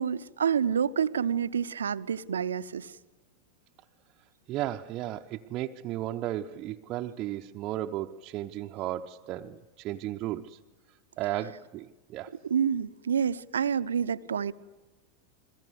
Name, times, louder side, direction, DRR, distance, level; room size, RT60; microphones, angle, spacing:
voice 1, 0.0-2.9 12.4-14.5, right 7 dB, 70° right, 0.8 m, -28 dB
voice 2, 4.5-10.6 11.2-12.3, right 13 dB, 35° right, 0.8 m, -34 dB
30.0 x 22.0 x 8.0 m
figure-of-eight pair, 90°, 0 cm